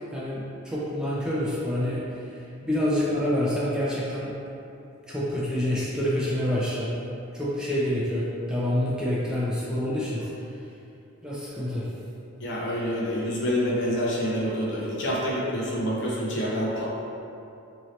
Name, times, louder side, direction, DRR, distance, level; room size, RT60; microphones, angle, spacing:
voice 1, 0.1-2.0 2.6-4.3 5.1-6.9 7.3-10.3 11.2-11.9, left 1 dB, 5° right, -8 dB, 0.4 m, -27 dB
voice 2, 12.4-17.0, equal, 55° left, -5 dB, 0.6 m, -27 dB
2.7 x 2.7 x 3.0 m, 2.7 s
head